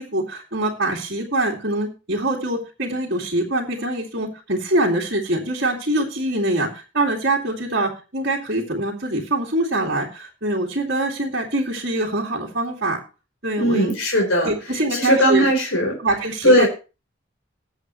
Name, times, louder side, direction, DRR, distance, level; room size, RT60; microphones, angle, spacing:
voice 1, 0.0-13.0 13.4-13.9 14.4-15.5 16.0-16.7, right 1 dB, 55° right, -2 dB, 2.4 m, -24 dB
voice 2, 13.6-14.5 14.9-16.0 16.4-16.7, equal, 85° left, 0 dB, 4.1 m, -18 dB
19.5 x 7.7 x 3.1 m, 0.31 s
head